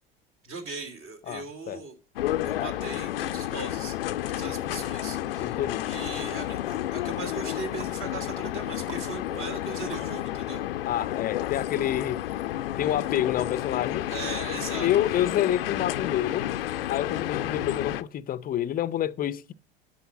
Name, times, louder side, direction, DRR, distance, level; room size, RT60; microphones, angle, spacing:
voice 1, 0.4-1.9 2.4-4.0 4.3-5.6 5.9-10.6 14.1-14.9, right 3 dB, 45° right, 2.9 m, -38 dB
voice 2, 1.3-1.8 5.4-5.9 10.9-12.2 12.8-14.1 14.8-16.5 16.9-19.5, left 11 dB, 30° left, 0.6 m, -28 dB
sound 1, 2.2-18.0, left 13 dB, 75° left, 0.5 m, -31 dB
sound 2, 6.2-11.6 12.0-12.1, right 4 dB, 75° right, 1.4 m, -50 dB
9.2 x 6.3 x 7.1 m
figure-of-eight pair, 75°, 29 cm